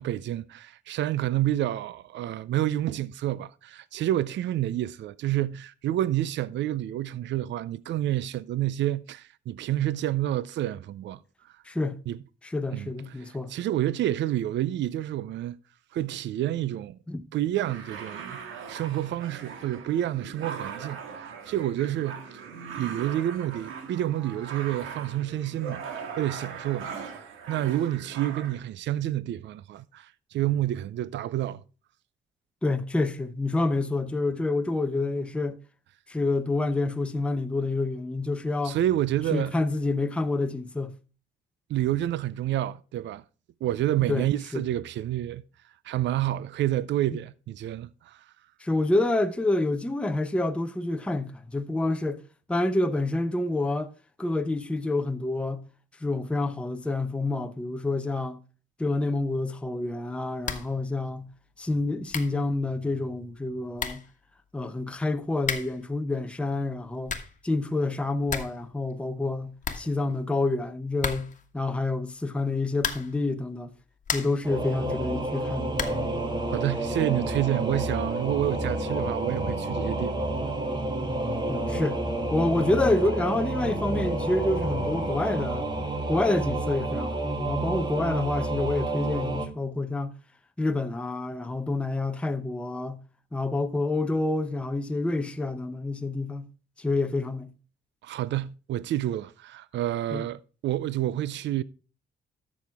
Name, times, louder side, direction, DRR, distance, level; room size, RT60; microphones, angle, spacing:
voice 1, 0.0-11.6 12.1-12.2 12.7-15.6 15.9-17.0 17.3-18.4 18.7-22.5 22.8-31.6 38.6-39.5 41.7-43.2 43.6-45.4 45.8-48.3 76.5-80.1 98.0-101.6, right 13 dB, 65° right, 0.5 m, -29 dB
voice 2, 11.6-12.0 12.4-13.5 17.1-17.2 32.6-35.6 36.1-38.8 39.3-40.9 44.1-44.3 44.5-44.6 48.6-52.2 52.5-53.9 54.2-55.6 56.0-58.4 58.8-61.3 61.6-64.0 64.5-67.2 67.4-73.7 74.1-75.7 81.5-82.0 82.3-85.7 86.1-90.1 90.6-93.0 93.3-96.5 96.8-97.5 100.1-100.3, left 2 dB, 5° left, 0.7 m, -28 dB
sound 1, 17.5-28.6, right 6 dB, 85° right, 1.8 m, -40 dB
sound 2, 60.4-60.8 61.1-61.2 61.8-61.9 62.1-62.4 63.4-63.5 63.8-64.1 65.4-65.9 66.8-67.4 67.8-67.9 68.1-68.6 68.9-69.0 69.3-69.4 69.6-70.4 71.0-71.5 72.7-73.2 73.7-74.5 75.7-76.1, left 6 dB, 40° left, 1.4 m, -33 dB
Singing / Musical instrument, 74.4-89.5, right 2 dB, 20° right, 2.1 m, -29 dB
13.0 x 6.3 x 3.5 m
cardioid pair, 90°, 20 cm